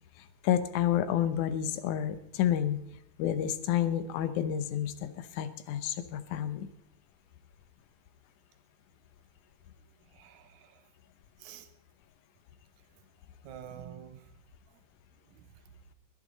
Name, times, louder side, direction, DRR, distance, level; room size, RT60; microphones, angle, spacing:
voice 1, 0.2-2.8 3.2-6.7, left 10 dB, 70° left, 2.3 m, -30 dB
voice 2, 10.1-10.8 11.4-11.7 13.4-14.3 15.3-15.5, right 9 dB, 65° right, 2.4 m, -48 dB
20.5 x 12.5 x 4.1 m
omnidirectional pair, 3.8 m